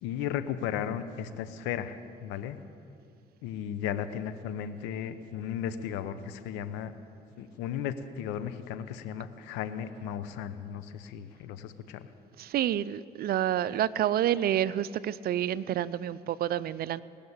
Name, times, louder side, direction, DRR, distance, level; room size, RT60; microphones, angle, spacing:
voice 1, 0.0-2.6 3.4-6.9 7.4-12.1, left 9 dB, 85° left, 11 dB, 0.8 m, -35 dB
voice 2, 12.4-17.0, right 11 dB, 55° right, 18 dB, 0.5 m, -28 dB
19.0 x 6.8 x 9.7 m, 2.5 s
supercardioid pair, 65°, 18 cm